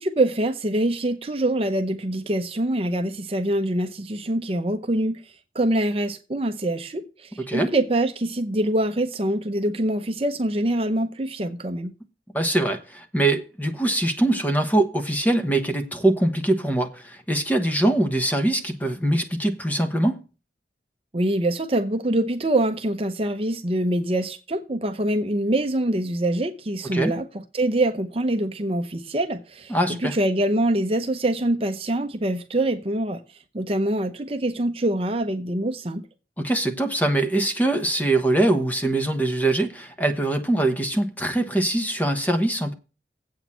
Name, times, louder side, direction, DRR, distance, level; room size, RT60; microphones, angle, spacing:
voice 1, 0.0-5.2 5.5-11.9 21.1-27.2 27.5-33.2 33.5-36.0, right 1 dB, 35° right, 0.7 m, -24 dB
voice 2, 7.4-7.7 12.3-20.2 26.9-27.1 29.7-30.2 36.4-42.7, right 1 dB, 10° left, 1.2 m, -23 dB
8.1 x 6.4 x 7.4 m
head